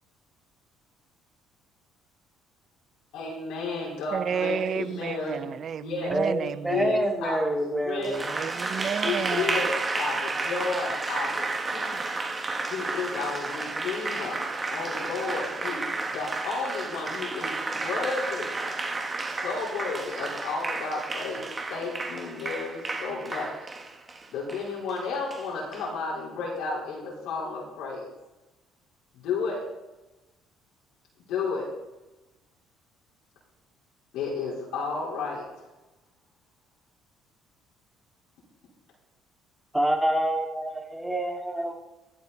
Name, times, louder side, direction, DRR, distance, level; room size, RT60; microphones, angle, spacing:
voice 1, 3.1-5.5 5.8-6.1 6.4-7.4 7.8-8.1 9.0-12.0 12.7-14.4 14.7-18.5 19.3-23.5 24.3-28.1 29.1-29.6 31.3-31.7 34.1-35.5, left 4 dB, 75° left, 4.2 m, -32 dB
voice 2, 4.1-7.0 8.2-9.7, right 8 dB, 50° right, 0.6 m, -31 dB
voice 3, 6.1-8.3 39.7-41.8, right 1 dB, 10° right, 2.6 m, -27 dB
Applause, 8.0-25.8, right 3 dB, 25° right, 1.8 m, -32 dB
16.0 x 9.7 x 4.2 m
supercardioid pair, 80°, 0 cm